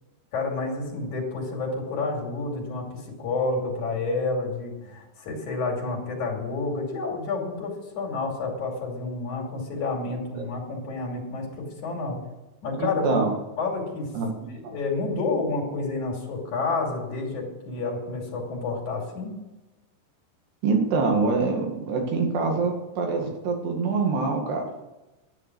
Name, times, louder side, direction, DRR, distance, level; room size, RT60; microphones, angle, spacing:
voice 1, 0.3-12.2 12.6-13.2 13.6-14.1 14.7-19.3, left 3 dB, 50° left, -1 dB, 3.9 m, -29 dB
voice 2, 12.8-13.3 14.1-14.8 20.6-24.7, right 4 dB, 85° right, 1 dB, 4.2 m, -25 dB
11.5 x 9.9 x 6.2 m, 1.1 s
omnidirectional pair, 4.6 m